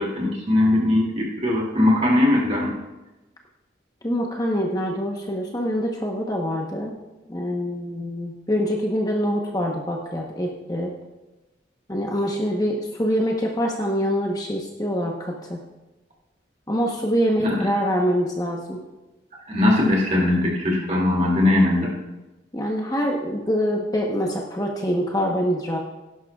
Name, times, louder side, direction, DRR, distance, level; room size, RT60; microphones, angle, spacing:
voice 1, 0.0-2.7 17.4-17.7 19.5-21.9, left 1 dB, 35° right, -3 dB, 2.5 m, -20 dB
voice 2, 4.0-6.9 7.3-11.0 11.9-15.6 16.7-18.8 22.5-25.8, equal, 20° left, 0 dB, 1.0 m, -25 dB
17.5 x 11.0 x 2.4 m, 1.1 s
head